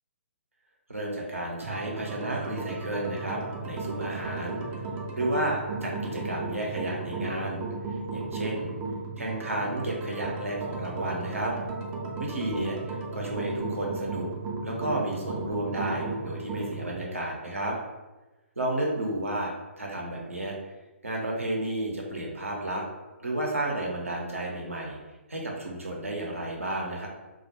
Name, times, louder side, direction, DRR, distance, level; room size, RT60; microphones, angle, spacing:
voice 1, 0.9-4.8 5.1-7.6 8.1-8.7 9.2-11.5 12.2-14.3 14.6-17.8 18.6-20.6 21.0-22.8 23.2-25.0 25.3-27.1, right 1 dB, 80° right, -2 dB, 0.7 m, -32 dB
sound 1, 1.6-17.0, right 3 dB, 20° right, 0.3 m, -35 dB
2.2 x 2.1 x 2.8 m, 1.1 s
figure-of-eight pair, 130°, 7 cm